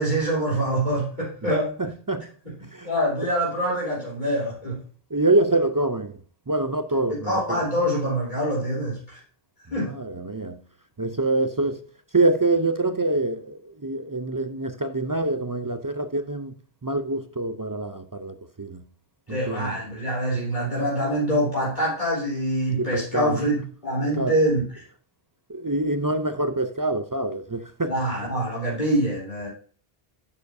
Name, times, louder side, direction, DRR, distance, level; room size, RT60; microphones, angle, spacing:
voice 1, 0.0-1.7 2.8-4.8 7.2-9.2 9.7-10.0 19.3-24.7 27.9-29.5, right 1 dB, 50° left, 3.9 m, -25 dB
voice 2, 1.8-2.3 2.7-2.9 5.1-6.2 6.5-7.6 9.9-10.6 11.0-11.8 12.1-16.5 16.8-18.8 19.3-19.8 22.8-23.4 24.1-24.3 25.5-27.9, right 2 dB, 30° right, 0.4 m, -25 dB
9.4 x 7.1 x 2.6 m
omnidirectional pair, 1.0 m